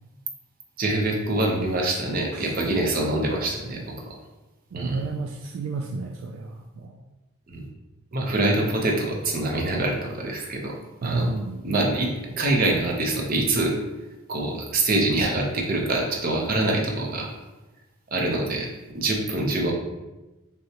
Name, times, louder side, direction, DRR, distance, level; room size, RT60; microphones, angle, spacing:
voice 1, 0.8-3.8 4.7-5.0 7.5-7.6 8.1-10.7 11.0-11.3 11.6-12.1 12.4-13.7 14.3-17.3 18.1-18.7 18.9-19.7, right 2 dB, 45° right, 0 dB, 0.7 m, -24 dB
voice 2, 4.7-7.0 8.3-8.7 11.0-11.7, right 3 dB, 65° right, 2 dB, 0.3 m, -31 dB
6.5 x 2.2 x 2.9 m, 1.1 s
head